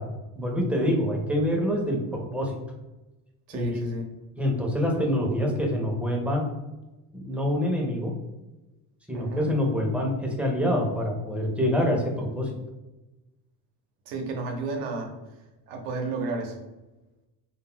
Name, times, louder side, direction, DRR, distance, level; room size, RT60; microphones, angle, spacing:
voice 1, 0.0-2.6 3.5-3.8 4.4-6.4 7.1-8.1 9.1-12.5, equal, 5° right, 0 dB, 0.5 m, -26 dB
voice 2, 3.5-4.0 9.1-9.5 14.1-15.1 15.7-16.6, right 3 dB, 90° right, 2 dB, 0.7 m, -32 dB
2.2 x 2.0 x 3.5 m, 1.1 s
cardioid pair, 115°, 42 cm